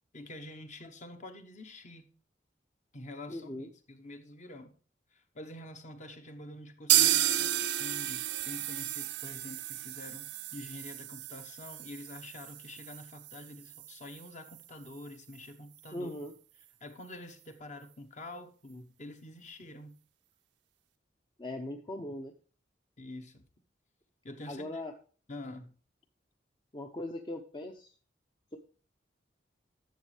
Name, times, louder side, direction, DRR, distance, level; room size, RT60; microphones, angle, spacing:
voice 1, 0.1-2.0 2.9-4.7 5.1-16.1 16.8-20.0 23.0-23.5 24.2-24.8 25.3-25.7, left 1 dB, 40° left, 1.0 m, -47 dB
voice 2, 3.3-3.7 15.9-16.3 21.4-22.3 24.5-24.9 26.7-27.9, left 1 dB, 25° left, 0.6 m, -39 dB
sound 1, 6.9-14.6 14.9-15.0 15.3-15.4 15.9-16.0, right 13 dB, 70° right, 0.5 m, -32 dB
12.0 x 7.1 x 3.2 m
head